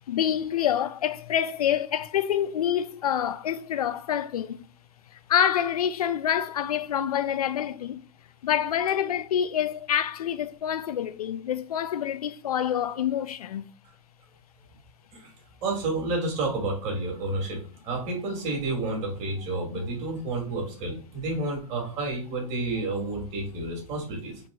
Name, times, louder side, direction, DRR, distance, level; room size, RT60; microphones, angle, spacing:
voice 1, 0.1-4.7 5.1-8.0 8.4-13.7 19.7-19.9, left 9 dB, 85° left, 0.6 m, -27 dB
voice 2, 15.6-24.4, right 2 dB, 40° right, 2.4 m, -30 dB
4.6 x 2.9 x 3.8 m
hypercardioid pair, 135°, 19 cm